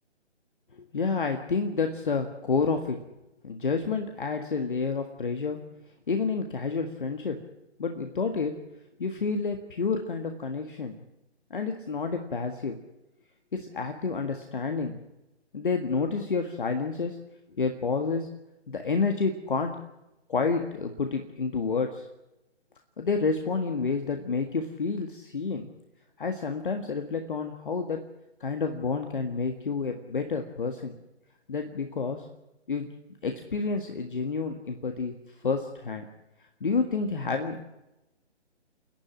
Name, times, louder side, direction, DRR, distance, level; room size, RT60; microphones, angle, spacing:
voice 1, 0.7-3.0 3.4-5.6 6.1-7.4 7.8-8.6 9.0-11.0 11.5-12.8 13.5-15.0 15.5-17.2 17.5-18.3 18.7-19.8 20.3-22.1 23.0-25.7 26.2-28.0 28.4-30.9 31.5-32.3 32.7-32.9 33.2-35.1 35.4-36.0 36.6-37.6, left 4 dB, 45° left, 5 dB, 1.8 m, -29 dB
29.5 x 10.5 x 9.9 m, 0.95 s
figure-of-eight pair, 145°, 35 cm